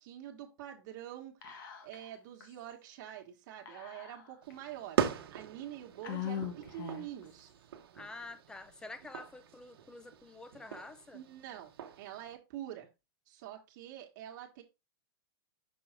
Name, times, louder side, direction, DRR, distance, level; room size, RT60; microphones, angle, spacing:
voice 1, 0.0-1.3 1.8-5.0 5.3-7.5 11.1-11.7 12.0-12.9 13.3-14.6, right 11 dB, 50° right, 1.4 m, -46 dB
Whispering, 1.4-2.1 2.4-2.5 3.7-4.5 5.1-5.2 6.0-7.2, left 9 dB, 55° left, 1.4 m, -41 dB
sound 1, 4.4-12.3, right 9 dB, 70° right, 1.0 m, -40 dB
voice 2, 7.9-11.2, left 3 dB, 5° left, 0.5 m, -48 dB
6.2 x 4.7 x 3.5 m
hypercardioid pair, 150°, 13 cm